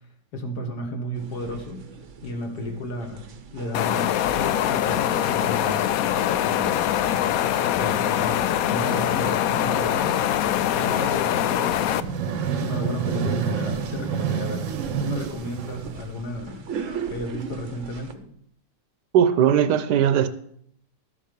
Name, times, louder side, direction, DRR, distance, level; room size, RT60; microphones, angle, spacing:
voice 1, 0.3-1.8 2.2-3.3 3.5-5.9 6.4-7.2 7.7-16.7 17.1-18.3, left 1 dB, 60° left, 2.1 m, -33 dB
sound 1, 1.1-18.1, right 5 dB, 50° right, 1.0 m, -40 dB
sound 2, 3.7-12.0, left 11 dB, 75° left, 0.8 m, -23 dB
sound 3, 11.8-16.4, right 7 dB, 85° right, 1.7 m, -28 dB
voice 2, 19.1-20.3, right 9 dB, 70° right, 1.3 m, -19 dB
13.0 x 7.4 x 5.2 m
omnidirectional pair, 2.0 m